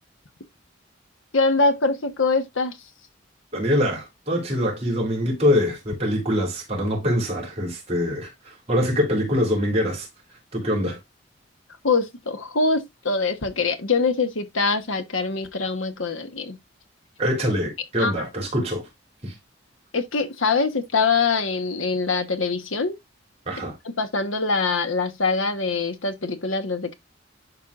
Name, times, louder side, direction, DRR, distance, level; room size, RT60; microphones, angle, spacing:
voice 1, 1.3-2.8 11.8-16.6 18.0-18.3 19.9-23.0 24.0-26.9, left 4 dB, 85° left, 1.2 m, -23 dB
voice 2, 3.5-10.1 10.5-11.0 17.2-18.8 19.2-19.3 23.5-23.7, equal, 30° right, 3.4 m, -24 dB
11.5 x 4.5 x 2.5 m
head